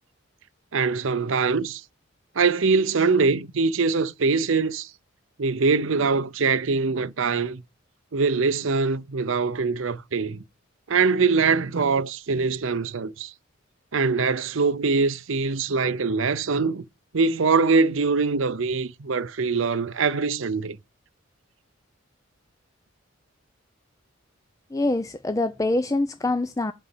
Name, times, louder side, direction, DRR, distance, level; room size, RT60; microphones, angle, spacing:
voice 1, 0.7-1.8 2.4-4.9 5.4-7.6 8.1-10.4 10.9-13.3 13.9-16.8 17.1-20.8, right 4 dB, 65° right, 0.7 m, -23 dB
voice 2, 24.7-26.7, left 2 dB, 15° left, 0.5 m, -25 dB
8.9 x 4.1 x 7.1 m
head